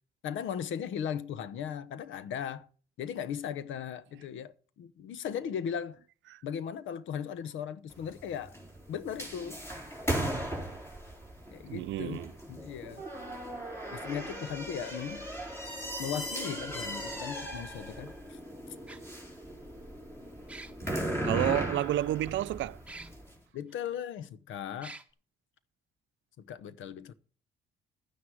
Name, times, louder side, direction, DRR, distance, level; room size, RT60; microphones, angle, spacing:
voice 1, 0.2-2.7 3.0-6.0 6.4-8.5 8.9-9.6 11.5-12.2 12.5-13.0 13.9-15.3 16.0-18.4 21.5-21.7 23.5-25.0 26.4-27.1, left 8 dB, 75° left, 0.9 m, -37 dB
sound 1, 7.9-23.3, right 1 dB, 10° left, 4.3 m, -38 dB
voice 2, 11.7-12.3 21.2-22.8, right 14 dB, 70° right, 0.5 m, -30 dB
sound 2, 16.3-16.4 17.8-17.9 18.9-19.0 20.5-20.9 22.9-23.1 23.7-23.8 24.8-25.0, right 2 dB, 5° right, 1.6 m, -45 dB
11.5 x 9.7 x 4.7 m
cardioid pair, 90°, 20 cm